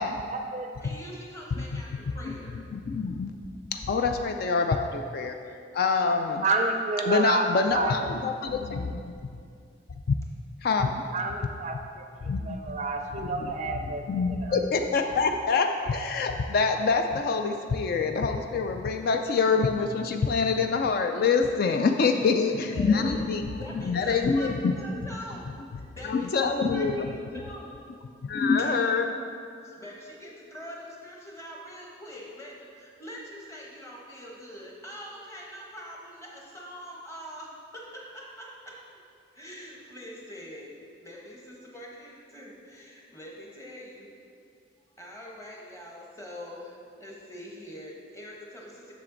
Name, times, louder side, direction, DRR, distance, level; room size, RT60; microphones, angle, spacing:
voice 1, 0.3-0.7 6.4-7.9 11.1-12.0 12.4-14.0 14.4-14.6, right 3 dB, 40° right, 4 dB, 0.4 m, -29 dB
voice 2, 0.8-2.5 22.1-23.2 23.6-25.5 25.8-27.8 28.6-28.7 29.1-29.2 29.6-38.8 39.3-44.1 45.0-48.9, equal, 15° left, -2 dB, 1.0 m, -43 dB
voice 3, 2.7-3.3 3.7-5.4 5.7-6.4 7.0-9.1 10.6-11.0 12.3-12.8 13.2-24.7 26.0-27.1 28.2-29.1, left 4 dB, 50° left, 5 dB, 0.3 m, -26 dB
7.5 x 6.0 x 3.8 m, 2.4 s
head